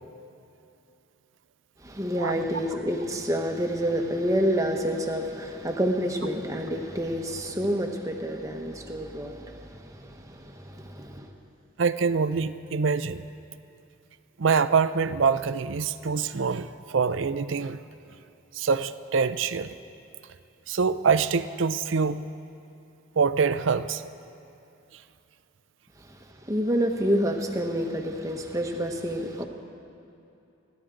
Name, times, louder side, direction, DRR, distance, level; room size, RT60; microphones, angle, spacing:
voice 1, 1.8-11.3 26.1-26.2 26.5-29.4, equal, 15° right, 3 dB, 1.0 m, -28 dB
voice 2, 11.8-13.2 14.4-17.8 18.5-19.7 20.7-22.2 23.2-24.0, right 5 dB, 75° right, 13 dB, 0.5 m, -25 dB
28.5 x 11.5 x 3.8 m, 2.8 s
head